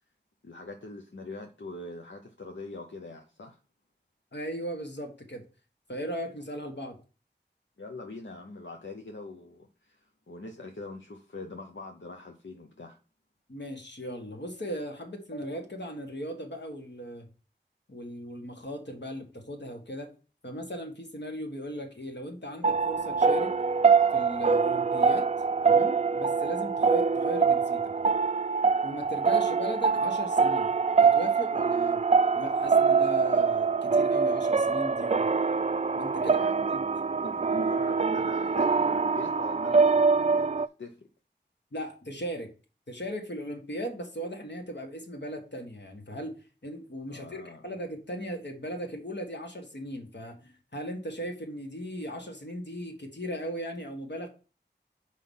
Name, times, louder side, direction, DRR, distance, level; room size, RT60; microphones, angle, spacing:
voice 1, 0.4-3.6 7.8-13.0 36.2-36.7 37.2-41.1 47.1-47.6, left 2 dB, 85° left, 3 dB, 0.8 m, -43 dB
voice 2, 4.3-5.4 5.9-7.0 13.5-17.3 17.9-20.1 20.4-23.5 24.1-25.3 25.6-27.9 28.8-32.0 32.3-35.3 35.9-36.4 36.7-36.8 41.7-42.5 42.9-46.4 46.6-54.3, equal, 70° left, 2 dB, 1.7 m, -37 dB
sound 1, 22.6-40.7, right 5 dB, 40° right, 0.4 m, -24 dB
5.8 x 4.9 x 5.5 m, 0.36 s
wide cardioid pair, 50°, 19 cm